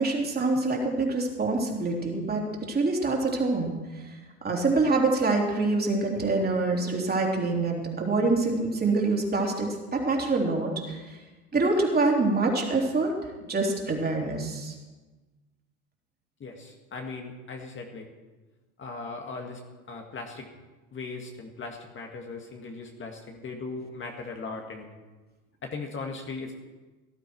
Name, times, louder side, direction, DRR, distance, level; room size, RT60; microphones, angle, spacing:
voice 1, 0.0-4.1 4.4-11.2 11.5-13.2 13.5-14.7, right 3 dB, 20° right, 0 dB, 3.5 m, -26 dB
voice 2, 16.4-18.1 18.8-19.6 19.9-20.5 20.9-24.9 25.6-26.5, left 3 dB, 25° left, 2 dB, 1.9 m, -38 dB
18.0 x 12.5 x 4.7 m, 1.2 s
hypercardioid pair, 85°, 43 cm